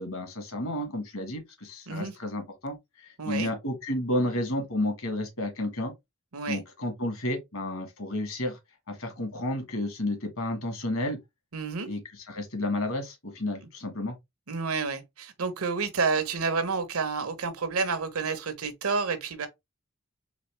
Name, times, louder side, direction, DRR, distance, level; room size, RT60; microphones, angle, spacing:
voice 1, 0.0-5.9 6.5-8.6 8.9-11.2 11.9-14.1, left 1 dB, 65° left, 1.6 m, -31 dB
voice 2, 3.2-3.5 6.3-6.6 11.5-11.9 14.5-19.5, right 4 dB, 80° right, 0.9 m, -29 dB
4.1 x 3.2 x 3.1 m
head